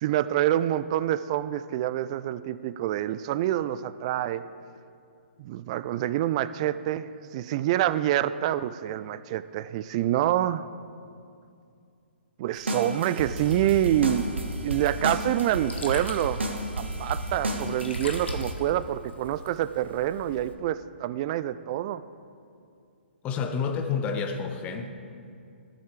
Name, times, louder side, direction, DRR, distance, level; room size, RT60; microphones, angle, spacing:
voice 1, 0.0-4.5 5.4-10.7 12.4-14.3 14.6-16.4 16.8-22.0, right 12 dB, 30° right, 15 dB, 0.3 m, -27 dB
sound 1, 12.5-18.5, right 1 dB, 75° right, 1.4 m, -32 dB
Sink (filling or washing), 14.9-20.5, left 3 dB, 70° left, 1.3 m, -45 dB
voice 2, 23.2-24.9, left 6 dB, 20° left, 6 dB, 0.8 m, -29 dB
13.0 x 7.6 x 5.0 m, 2.4 s
figure-of-eight pair, 125°, 6 cm